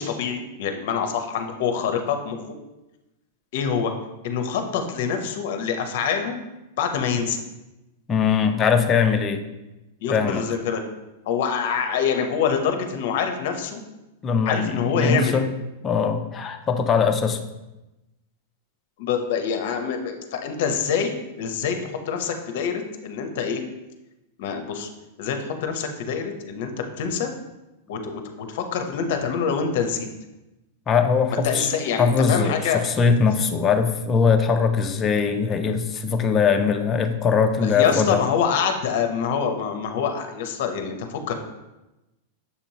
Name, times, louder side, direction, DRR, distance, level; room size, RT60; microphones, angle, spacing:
voice 1, 0.0-2.4 3.5-3.9 4.2-6.4 6.8-7.4 10.0-10.8 11.3-13.8 14.5-15.4 19.0-23.6 24.4-24.9 25.2-27.3 27.9-30.1 31.4-32.8 37.6-41.3, left 6 dB, 60° left, 6 dB, 0.6 m, -25 dB
voice 2, 8.1-9.4 10.1-10.4 14.2-15.5 15.8-17.4 30.9-31.7 32.0-38.2, left 6 dB, 20° left, 5 dB, 0.3 m, -21 dB
6.7 x 2.9 x 2.7 m, 1.0 s
supercardioid pair, 160°, 0 cm